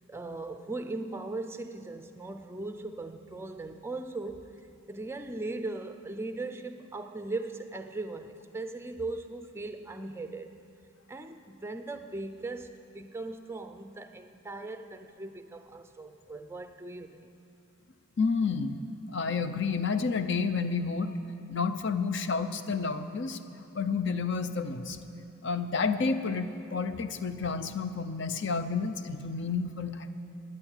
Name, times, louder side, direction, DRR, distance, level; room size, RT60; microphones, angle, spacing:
voice 1, 0.1-10.5 11.1-17.3, right 2 dB, 10° right, 0.5 m, -39 dB
voice 2, 18.2-18.8 19.1-21.1 21.5-23.4 23.7-25.0 25.4-30.1, left 5 dB, 55° left, 0.6 m, -30 dB
14.0 x 9.7 x 9.0 m
head